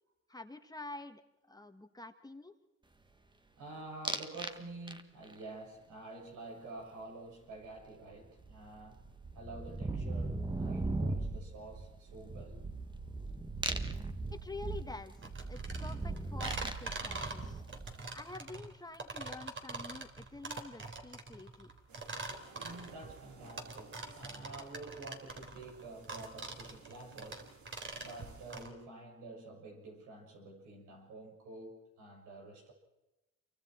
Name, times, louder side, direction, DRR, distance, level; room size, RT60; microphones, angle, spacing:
voice 1, 0.3-1.2 1.5-2.5 14.3-15.2 15.5-17.6 18.1-21.7, left 3 dB, 15° left, 7 dB, 1.6 m, -47 dB
voice 2, 3.6-9.0 9.3-12.7 17.5-18.1 22.6-32.7, right 2 dB, 85° right, 1 dB, 6.7 m, -49 dB
sound 1, 4.0-4.6 4.9-5.3 7.8-7.9 8.1-18.2, right 2 dB, 15° right, 1.5 m, -38 dB
sound 2, 15.2-28.7, right 3 dB, 40° right, 3.6 m, -43 dB
sound 3, 21.9-28.6, right 4 dB, 70° right, 3.7 m, -59 dB
28.5 x 24.0 x 4.5 m, 0.98 s
cardioid pair, 90°, 30 cm